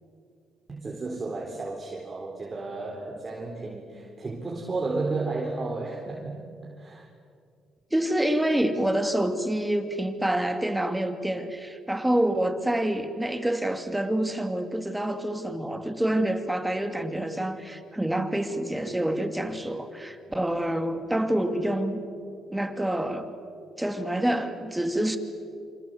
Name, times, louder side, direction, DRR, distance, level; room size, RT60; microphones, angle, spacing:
voice 1, 0.7-6.4 6.7-7.1, right 3 dB, 30° right, -1 dB, 4.3 m, -33 dB
voice 2, 7.9-22.0 22.5-23.4 23.8-25.2, right 1 dB, 10° right, 8 dB, 2.6 m, -27 dB
27.0 x 27.0 x 8.0 m, 2.4 s
cardioid pair, 90°, 0 cm